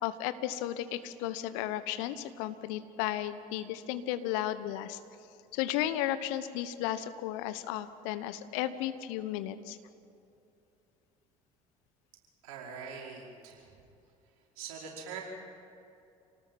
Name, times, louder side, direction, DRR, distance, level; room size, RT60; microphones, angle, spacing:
voice 1, 0.0-5.0 5.5-9.8, left 12 dB, 70° left, 13 dB, 1.2 m, -34 dB
voice 2, 12.4-13.8 14.6-15.2, right 6 dB, 75° right, -2 dB, 5.2 m, -43 dB
28.5 x 19.0 x 5.7 m, 2.7 s
hypercardioid pair, 60°, 19 cm